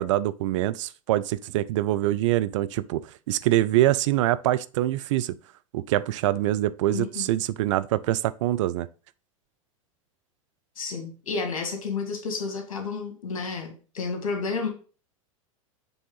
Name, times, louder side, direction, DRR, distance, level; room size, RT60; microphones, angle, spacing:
voice 1, 0.0-5.3 5.7-8.9, right 14 dB, 60° right, 0.4 m, -24 dB
voice 2, 6.9-7.3 10.8-14.7, left 4 dB, 75° left, 1.8 m, -31 dB
7.0 x 3.5 x 3.8 m
hypercardioid pair, 95°, 18 cm